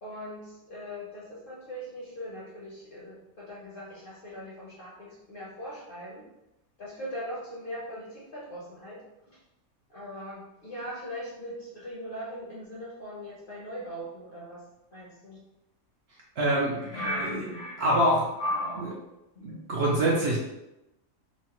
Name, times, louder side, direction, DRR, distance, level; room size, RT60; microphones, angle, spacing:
voice 1, 0.0-6.2 6.8-9.0 9.9-14.6 14.9-15.4 16.7-19.0 19.4-19.6, equal, 55° left, -6 dB, 0.7 m, -39 dB
voice 2, 16.4-17.0 17.8-18.3 19.4-20.4, right 1 dB, 65° right, -4 dB, 0.7 m, -24 dB
3.0 x 2.1 x 2.9 m, 0.91 s
omnidirectional pair, 1.5 m